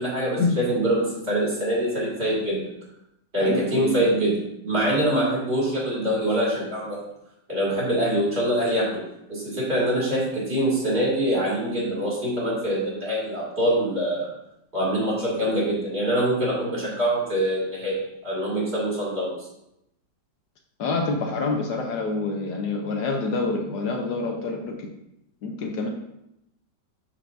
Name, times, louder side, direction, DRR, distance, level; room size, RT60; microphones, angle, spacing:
voice 1, 0.0-2.6 3.3-4.3 4.6-7.0 7.5-9.0 9.3-14.3 14.7-18.0 18.2-19.3, right 1 dB, 35° right, -5 dB, 2.7 m, -24 dB
voice 2, 3.4-4.1 20.8-24.9 25.4-25.9, left 3 dB, 70° left, 3 dB, 1.3 m, -27 dB
12.0 x 4.6 x 2.6 m, 0.83 s
omnidirectional pair, 2.0 m